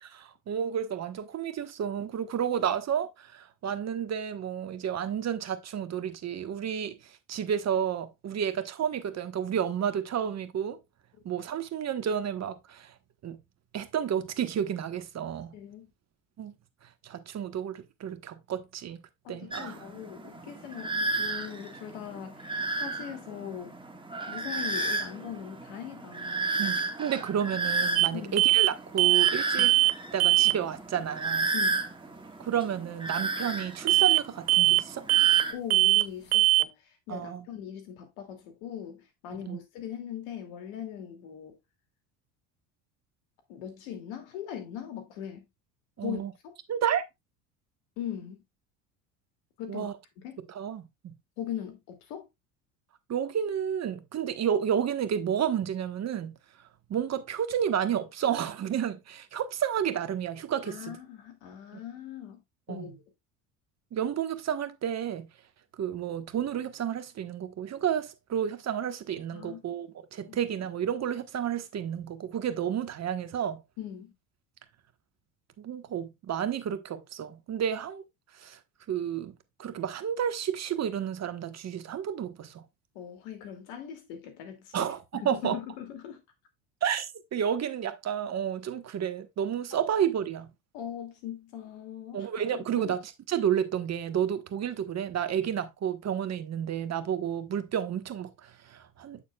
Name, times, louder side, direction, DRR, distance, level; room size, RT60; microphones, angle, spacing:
voice 1, 0.0-10.8 11.2-12.9 13.2-13.4 13.7-15.6 16.4-16.5 17.0-19.0 19.3-19.8 26.6-29.7 30.1-31.5 32.4-35.0 37.1-37.4 39.5-39.6 46.0-46.3 46.7-47.0 49.7-49.9 50.5-51.1 53.1-56.3 56.9-61.0 62.7-62.9 63.9-65.3 65.8-73.6 75.6-78.0 78.3-78.6 78.9-82.6 84.7-85.6 86.8-90.5 92.1-93.0 93.3-99.2, right 9 dB, 40° right, 1.3 m, -31 dB
voice 2, 15.5-15.9 19.2-23.8 24.3-26.5 28.1-28.5 29.6-29.8 31.5-31.8 35.5-41.6 43.5-45.5 46.0-46.5 48.0-48.4 49.6-49.9 50.2-50.4 51.4-52.3 60.6-62.4 62.7-63.0 69.3-69.6 70.2-70.4 73.8-74.1 82.9-84.9 85.2-86.2 89.7-89.8 90.7-92.3 92.7-92.9, left 9 dB, 70° left, 2.6 m, -40 dB
sound 1, 19.5-35.5, right 3 dB, 10° right, 1.7 m, -33 dB
sound 2, 28.0-28.1 28.4-28.7 29.0-29.3 29.6-29.9 30.2-30.6 33.9-34.2 34.5-34.8 35.1-35.4 35.7-36.1 36.3-36.6, right 18 dB, 85° right, 0.5 m, -21 dB
8.4 x 6.9 x 2.3 m
hypercardioid pair, 75°, 42 cm